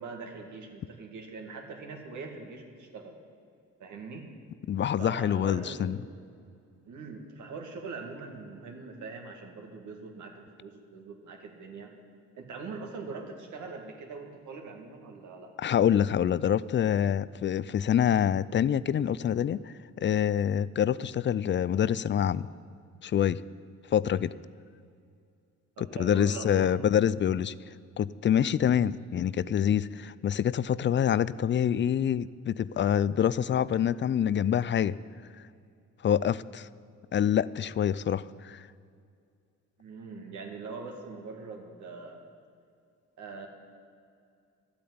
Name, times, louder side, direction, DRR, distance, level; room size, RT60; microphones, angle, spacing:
voice 1, 0.0-3.2 3.8-4.3 5.0-6.0 6.8-11.9 12.4-15.7 25.8-26.8 39.8-42.2 43.2-43.5, right 4 dB, 75° right, 3 dB, 2.2 m, -42 dB
voice 2, 4.7-6.0 15.6-19.7 20.0-22.5 23.0-23.4 23.9-24.3 25.8-27.5 28.0-35.0 36.0-36.7 37.1-38.7, left 9 dB, 40° left, 18 dB, 0.4 m, -26 dB
12.0 x 8.5 x 9.5 m, 2.4 s
cardioid pair, 90°, 30 cm